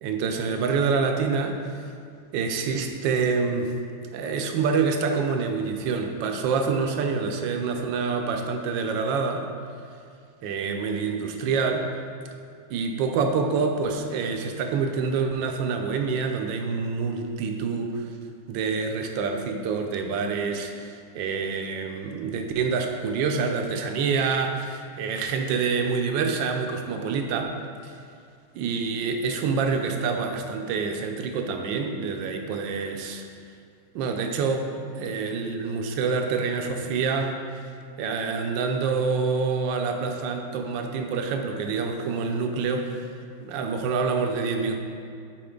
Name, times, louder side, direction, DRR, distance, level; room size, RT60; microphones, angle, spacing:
voice 1, 0.0-1.6 2.3-3.7 4.1-9.5 10.4-11.9 12.7-18.1 18.5-27.6 27.8-27.9 28.5-33.2 33.9-34.7 34.9-37.7 38.0-43.0 43.4-44.8, right 5 dB, 75° right, 4 dB, 1.1 m, -27 dB
6.8 x 4.9 x 3.7 m, 2.3 s
omnidirectional pair, 2.4 m